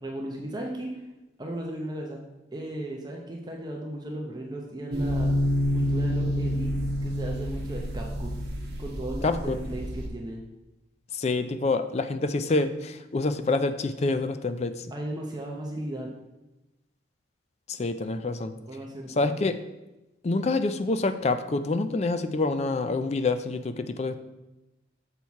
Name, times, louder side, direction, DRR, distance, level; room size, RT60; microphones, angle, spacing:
voice 1, 0.0-1.0 1.4-2.2 2.5-5.3 5.7-6.7 7.0-8.3 8.8-10.4 14.9-16.1 18.7-19.4, right 1 dB, 20° right, -1 dB, 0.7 m, -36 dB
sound 1, 4.9-10.1, equal, 55° right, 1.1 m, -28 dB
voice 2, 9.2-9.6 11.1-14.9 17.7-18.5 19.2-19.6 20.2-24.2, left 3 dB, 35° left, 10 dB, 0.4 m, -27 dB
7.0 x 4.5 x 4.6 m, 0.99 s
head